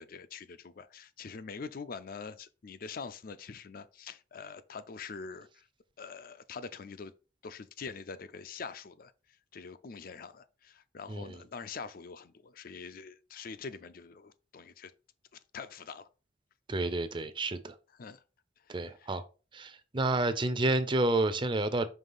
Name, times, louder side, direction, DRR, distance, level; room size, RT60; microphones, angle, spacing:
voice 1, 0.0-5.7 6.0-7.1 7.4-9.1 9.5-14.9 15.3-16.1 18.0-18.2 18.7-19.1, left 5 dB, 50° left, 0.5 m, -44 dB
voice 2, 11.1-11.4 16.7-17.8 18.7-19.2 19.5-21.9, right 2 dB, 25° right, 0.6 m, -30 dB
5.5 x 3.3 x 5.5 m
head